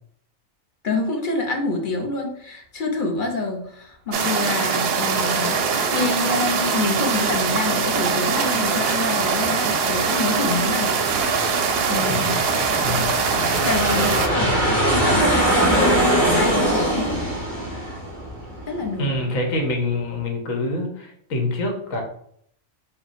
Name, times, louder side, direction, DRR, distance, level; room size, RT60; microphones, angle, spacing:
voice 1, 0.8-11.0 11.9-12.4 13.6-15.4 15.7-17.1 17.6-17.9 18.7-19.1, left 3 dB, 45° left, 2 dB, 0.8 m, -27 dB
sound 1, 4.1-14.3, right 5 dB, 60° right, 0.7 m, -22 dB
Aircraft, 8.2-19.3, right 1 dB, 25° left, 1.7 m, -24 dB
voice 2, 12.1-12.4 12.8-13.1 19.0-22.0, left 2 dB, 85° left, 2 dB, 1.4 m, -26 dB
4.3 x 2.3 x 4.0 m, 0.67 s
omnidirectional pair, 1.4 m